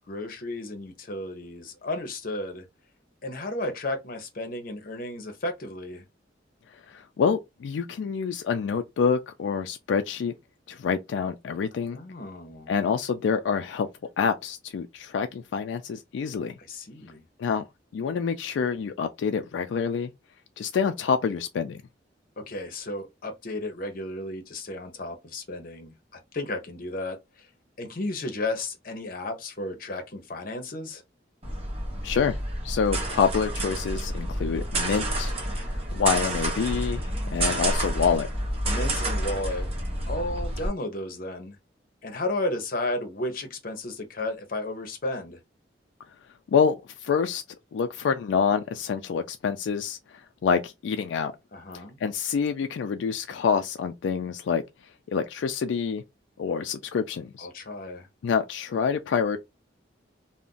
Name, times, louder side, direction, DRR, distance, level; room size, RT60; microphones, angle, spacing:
voice 1, 0.1-2.7 3.2-6.0 11.9-12.8 16.6-17.2 22.4-25.9 26.3-27.5 27.8-31.0 38.6-39.7 40.1-41.6 42.0-45.4 51.5-52.0 57.4-58.1, left 2 dB, 50° left, 0.7 m, -33 dB
voice 2, 6.9-10.3 10.7-12.0 12.7-13.9 14.2-16.5 17.4-17.6 17.9-20.1 20.6-21.8 32.0-32.4 32.6-38.3 46.5-47.4 47.7-51.3 52.0-54.6 55.1-56.0 56.4-57.5 58.2-59.4, left 6 dB, 85° left, 0.3 m, -27 dB
sound 1, 31.4-40.7, right 1 dB, 35° right, 0.9 m, -29 dB
2.4 x 2.1 x 3.7 m
head